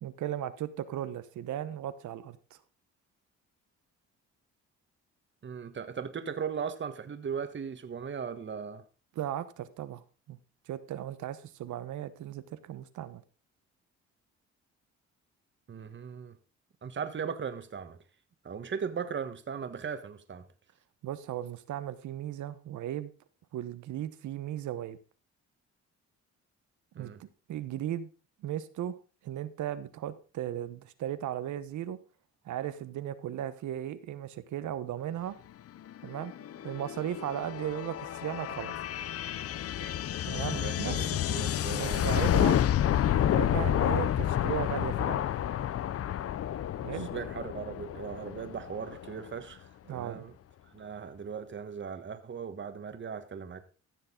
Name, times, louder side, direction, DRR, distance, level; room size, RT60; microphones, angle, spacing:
voice 1, 0.0-2.4 9.1-10.4 10.7-13.2 21.0-23.1 23.5-25.0 26.9-28.1 28.4-28.9 29.2-32.0 32.4-35.4 36.0-36.3 36.6-38.7 40.2-41.0 41.7-42.6 43.3-45.3 46.9-47.1 49.9-50.2, right 11 dB, 75° right, 1.1 m, -36 dB
voice 2, 5.4-8.8 15.7-16.4 16.8-18.0 18.4-20.5 26.9-27.2 39.8-40.0 40.3-42.4 43.2-43.5 46.8-50.3 50.7-53.6, right 6 dB, 40° right, 1.4 m, -38 dB
sound 1, 35.9-49.3, left 11 dB, 50° left, 0.6 m, -30 dB
15.0 x 6.7 x 3.9 m
cardioid pair, 90°, 30 cm